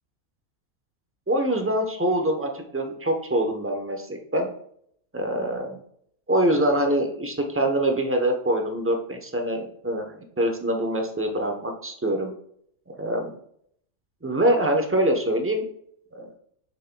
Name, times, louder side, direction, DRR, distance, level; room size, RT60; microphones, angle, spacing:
voice 1, 1.3-4.5 5.1-5.8 6.3-12.3 12.9-13.3 14.2-15.7 16.1-16.3, right 1 dB, 15° right, 3 dB, 0.5 m, -24 dB
6.8 x 6.4 x 2.2 m, 0.67 s
omnidirectional pair, 1.5 m